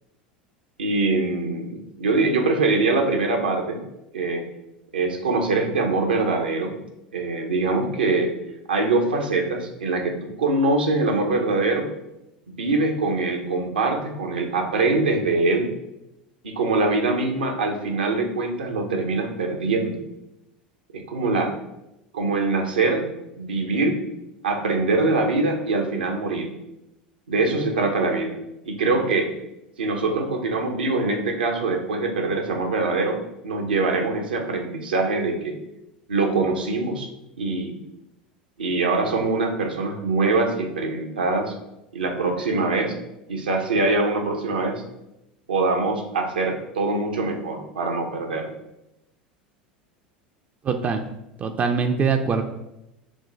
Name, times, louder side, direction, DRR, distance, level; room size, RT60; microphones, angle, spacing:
voice 1, 0.8-3.8 4.1-4.4 4.9-6.7 7.1-8.3 8.7-11.9 12.5-15.7 16.4-20.0 20.9-21.5 22.1-23.1 23.4-24.0 24.4-26.5 27.3-28.4 28.6-29.3 29.8-33.2 33.4-35.6 36.1-37.1 37.4-37.7 38.6-41.5 41.9-43.0 43.3-44.8 45.5-48.5, right 3 dB, 80° right, 3 dB, 0.7 m, -23 dB
voice 2, 50.6-51.0 51.4-52.4, right 5 dB, 30° right, 5 dB, 0.4 m, -22 dB
6.2 x 2.1 x 3.2 m, 0.89 s
figure-of-eight pair, 80°, 5 cm